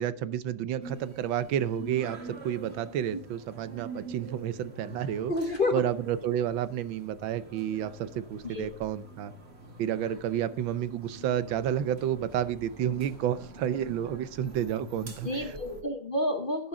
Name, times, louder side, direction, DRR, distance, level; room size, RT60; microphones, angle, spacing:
voice 1, 0.0-5.3 5.7-9.3 9.8-15.6, right 10 dB, 85° right, 14 dB, 1.6 m, -30 dB
sound 1, 0.8-15.8, right 2 dB, 35° right, 2.0 m, -46 dB
voice 2, 5.3-5.8 8.4-8.7 15.2-16.7, left 2 dB, 35° left, 6 dB, 1.0 m, -29 dB
14.0 x 11.0 x 3.8 m, 0.40 s
omnidirectional pair, 2.1 m